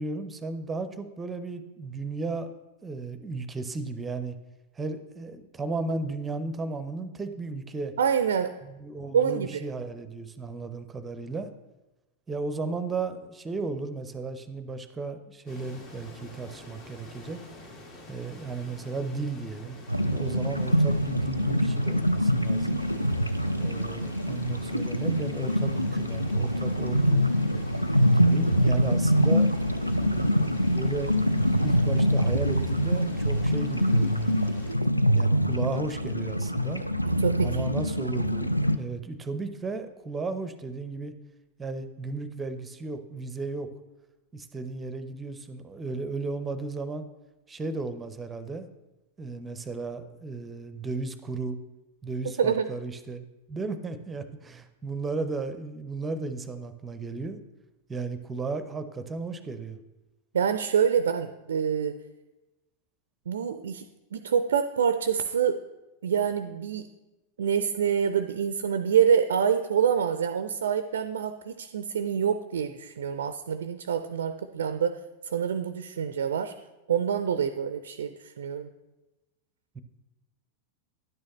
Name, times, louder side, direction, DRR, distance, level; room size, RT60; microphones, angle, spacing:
voice 1, 0.0-2.5 2.8-4.4 4.7-7.9 8.6-11.5 12.3-17.4 18.1-22.8 23.6-27.3 28.1-29.5 29.9-31.1 31.6-34.4 35.1-36.8 37.4-41.1 41.6-43.7 44.3-47.1 47.5-48.7 49.2-51.6 52.0-57.4 57.9-59.8 79.7-79.8, right 3 dB, 15° right, 10 dB, 0.6 m, -34 dB
voice 2, 8.0-8.5 9.1-9.6 37.1-37.6 52.4-52.7 60.3-62.0 63.3-63.8 64.1-65.6 66.0-66.9 67.4-76.5 76.9-78.7, right 7 dB, 65° right, 11 dB, 0.4 m, -26 dB
sound 1, 15.5-34.7, left 2 dB, 45° left, 1.7 m, -47 dB
sound 2, 19.9-38.8, equal, 90° left, 0.3 m, -25 dB
10.5 x 6.3 x 3.1 m, 1.0 s
figure-of-eight pair, 90°, 0 cm